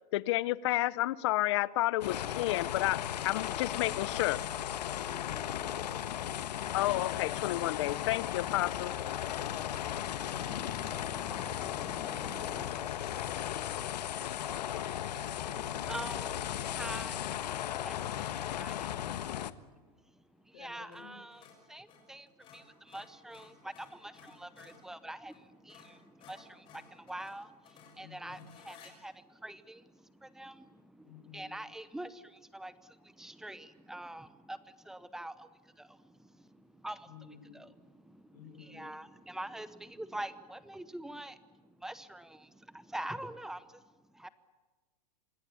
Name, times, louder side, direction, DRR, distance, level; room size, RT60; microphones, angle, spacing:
voice 1, 0.0-4.5 6.7-9.0, left 17 dB, 45° left, 0.8 m, -31 dB
sound 1, 2.0-19.5, left 11 dB, 85° left, 1.4 m, -36 dB
voice 2, 4.9-6.0 9.3-10.3 11.5-14.2 15.2-15.9 16.5-16.9 19.8-21.2 28.0-28.4 31.0-31.5 37.1-37.6 38.3-38.8, left 6 dB, 70° left, 7.8 m, -53 dB
voice 3, 10.4-12.7 15.4-44.3, right 1 dB, ahead, 0.8 m, -46 dB
sound 2, 17.5-17.8 20.9-21.1 21.3-24.9 25.3-25.4 25.7-28.9, left 7 dB, 25° left, 6.5 m, -57 dB
27.0 x 21.5 x 8.6 m
supercardioid pair, 170°, 21 cm